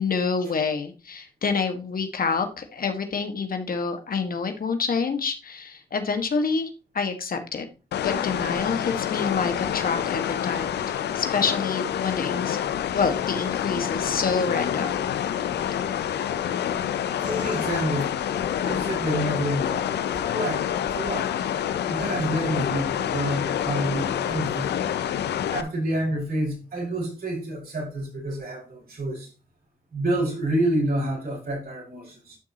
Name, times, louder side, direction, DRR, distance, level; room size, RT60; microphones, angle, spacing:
voice 1, 0.0-7.7 8.0-12.6 12.9-15.1, left 5 dB, 60° left, 1.7 m, -27 dB
sound 1, 7.9-25.6, left 10 dB, 80° left, 0.7 m, -27 dB
sound 2, 17.2-18.6 19.7-20.2 20.8-21.1 22.0-22.3, equal, 5° right, 3.1 m, -41 dB
voice 2, 17.2-18.1 18.6-19.8 20.3-20.6 20.9-21.3 21.9-24.9 25.5-29.3 29.9-32.4, right 1 dB, 60° right, 5.9 m, -28 dB
12.0 x 6.1 x 2.9 m
supercardioid pair, 50°, 17 cm